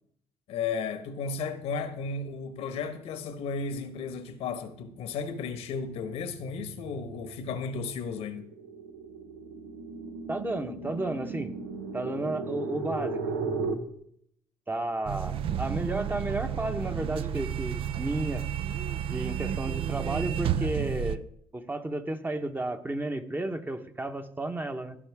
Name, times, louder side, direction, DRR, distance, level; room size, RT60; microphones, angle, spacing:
voice 1, 0.5-8.5, left 5 dB, 75° left, 1.1 m, -34 dB
sound 1, 4.1-4.4 4.8-13.7, right 4 dB, 90° right, 1.0 m, -37 dB
voice 2, 10.3-11.6 11.9-13.3 14.7-18.5 19.1-21.2 21.5-25.0, right 2 dB, 20° right, 1.1 m, -32 dB
sound 2, 15.1-21.2, right 9 dB, 60° right, 0.5 m, -31 dB
15.0 x 5.6 x 3.6 m
supercardioid pair, 60°, 10 cm